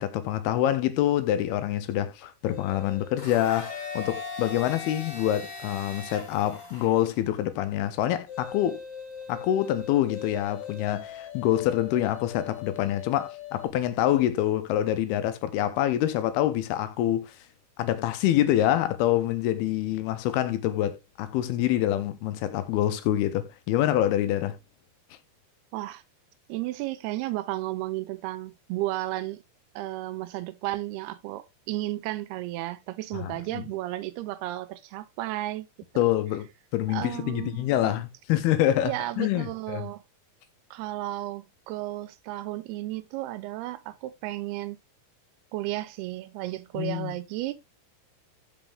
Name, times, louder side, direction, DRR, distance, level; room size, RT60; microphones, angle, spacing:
voice 1, 0.0-8.8 9.3-17.4 17.8-24.6 33.1-33.6 36.0-39.9 46.8-47.1, left 12 dB, 85° left, 2.6 m, -26 dB
sound 1, 2.5-6.9 8.3-13.7, left 8 dB, 55° left, 2.5 m, -42 dB
Domestic sounds home sounds, 3.2-7.2, left 3 dB, 25° left, 2.4 m, -40 dB
voice 2, 26.5-29.4 29.8-35.7 36.9-38.0 38.8-40.0 40.7-44.8 45.5-47.5, right 16 dB, 90° right, 2.6 m, -33 dB
6.1 x 5.5 x 3.4 m
omnidirectional pair, 4.5 m